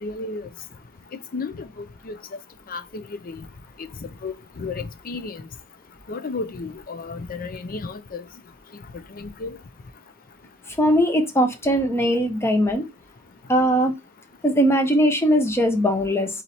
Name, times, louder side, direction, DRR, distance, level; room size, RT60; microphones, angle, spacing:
voice 1, 0.0-0.5 1.3-2.2 2.7-3.4 4.2-5.5 6.1-8.2 9.2-9.6, left 3 dB, 40° left, 0.5 m, -33 dB
voice 2, 10.8-12.8 13.5-13.9 14.4-16.3, equal, 10° left, 0.8 m, -20 dB
4.1 x 3.0 x 4.1 m
head